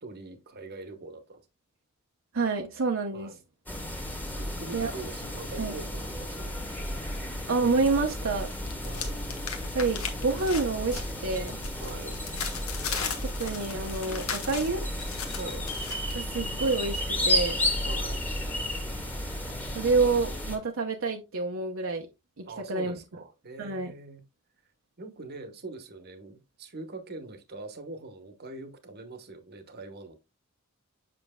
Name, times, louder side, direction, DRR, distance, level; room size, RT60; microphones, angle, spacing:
voice 1, 0.0-1.4 3.1-3.4 4.4-6.6 8.8-9.2 11.7-12.2 15.4-15.6 17.8-18.2 22.5-24.2 25.0-30.1, right 3 dB, 50° right, 1.1 m, -42 dB
voice 2, 2.3-3.3 4.7-4.9 5.6-5.7 7.5-8.5 9.7-11.6 13.4-14.8 16.1-17.6 19.7-22.1 22.4-23.0 23.6-23.9, right 3 dB, 65° right, 0.8 m, -28 dB
sound 1, 3.7-20.6, left 1 dB, 10° left, 1.3 m, -33 dB
sound 2, 7.1-8.0 8.3-16.1, left 6 dB, 85° left, 1.2 m, -37 dB
7.7 x 5.8 x 2.2 m
head